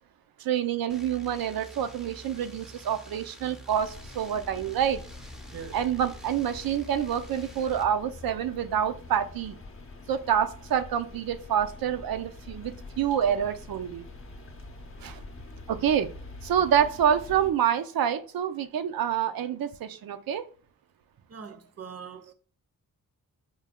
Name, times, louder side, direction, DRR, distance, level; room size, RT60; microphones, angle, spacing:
voice 1, 0.4-5.0 5.7-9.6 10.1-14.1 15.0-15.2 15.7-16.1 16.4-20.4, right 9 dB, 85° right, 0.5 m, -27 dB
sound 1, 0.9-7.8, right 1 dB, ahead, 0.5 m, -48 dB
sound 2, 3.7-17.5, left 3 dB, 40° left, 0.6 m, -45 dB
voice 2, 21.3-22.3, right 6 dB, 45° right, 0.6 m, -42 dB
4.5 x 2.2 x 3.5 m
wide cardioid pair, 105°, 35 cm